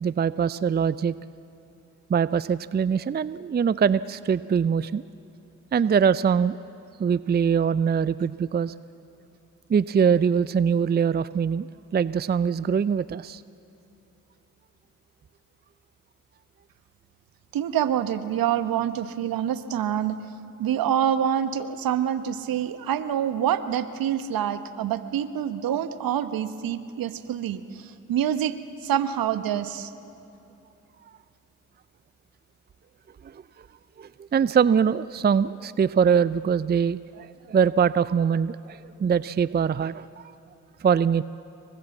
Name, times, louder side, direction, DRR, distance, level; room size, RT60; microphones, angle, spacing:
voice 1, 0.0-1.1 2.1-5.0 5.7-6.6 7.0-8.7 9.7-11.7 11.9-13.4 34.0-40.2 40.8-41.2, right 7 dB, 25° right, 17 dB, 0.6 m, -23 dB
voice 2, 17.5-20.2 20.6-29.9, right 10 dB, 65° right, 11 dB, 1.3 m, -26 dB
29.0 x 23.0 x 7.3 m, 2.9 s
hypercardioid pair, 50°, 37 cm